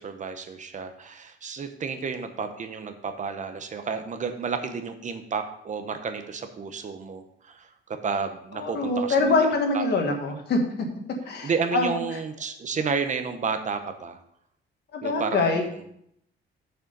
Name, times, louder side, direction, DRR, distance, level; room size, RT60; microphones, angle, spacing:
voice 1, 0.0-9.4 9.7-9.8 11.4-14.2 15.0-15.7, right 5 dB, 40° right, 7 dB, 0.8 m, -31 dB
voice 2, 8.5-10.6 11.2-12.0 14.9-15.6, left 3 dB, 55° left, 3 dB, 1.5 m, -24 dB
6.8 x 6.5 x 5.3 m, 0.73 s
cardioid pair, 155°, 20 cm